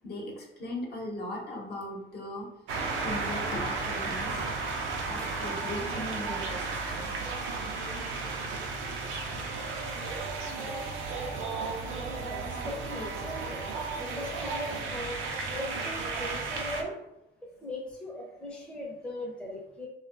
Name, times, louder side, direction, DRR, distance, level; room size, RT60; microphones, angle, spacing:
voice 1, 0.0-2.5 3.0-4.5 5.0-7.1, left 1 dB, 55° left, -1 dB, 0.8 m, -38 dB
sound 1, 2.7-16.8, right 3 dB, 90° right, 0.5 m, -34 dB
Bowed string instrument, 3.5-7.4, left 3 dB, 85° left, 0.5 m, -48 dB
sound 2, 10.5-14.8, right 5 dB, 35° right, 0.4 m, -53 dB
voice 2, 12.2-13.6 14.0-15.2 15.5-17.0 17.6-19.9, left 1 dB, 5° left, -3 dB, 0.6 m, -39 dB
2.7 x 2.3 x 2.4 m, 0.86 s
cardioid pair, 90°, 20 cm